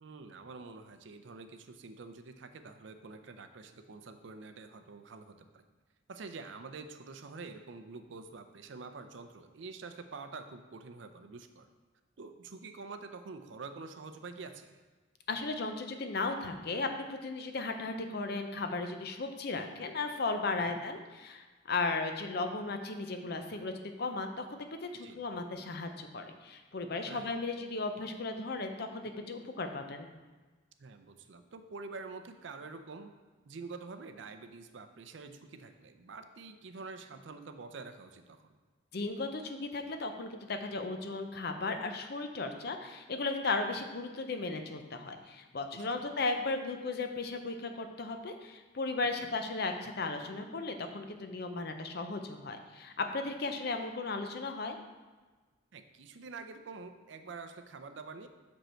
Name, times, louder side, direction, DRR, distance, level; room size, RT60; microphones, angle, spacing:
voice 1, 0.0-5.6 6.1-11.7 12.2-14.8 20.6-20.8 24.9-25.2 27.1-27.3 30.8-33.1 33.4-38.4 45.7-46.0 49.2-49.3 55.7-58.3, right 4 dB, 65° right, 8 dB, 0.5 m, -47 dB
voice 2, 15.3-30.1 38.9-54.8, left 3 dB, 55° left, 6 dB, 0.6 m, -36 dB
6.4 x 5.3 x 4.4 m, 1.3 s
head